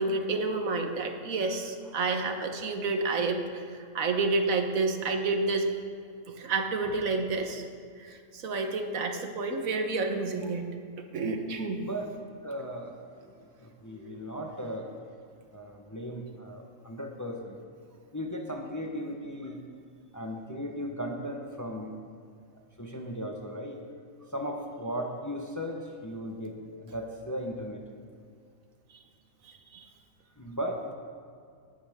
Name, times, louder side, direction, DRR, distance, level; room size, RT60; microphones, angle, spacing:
voice 1, 0.0-3.6 3.9-5.7 6.4-7.7 8.0-10.7 11.1-11.8 29.7-29.9, right 3 dB, 80° right, 5 dB, 1.5 m, -29 dB
voice 2, 11.8-12.2 12.4-15.1 15.5-17.6 18.1-19.6 20.1-21.9 22.8-23.8 24.2-27.8 30.4-30.9, equal, 15° left, 2 dB, 0.9 m, -37 dB
18.0 x 12.0 x 3.6 m, 2.2 s
omnidirectional pair, 1.4 m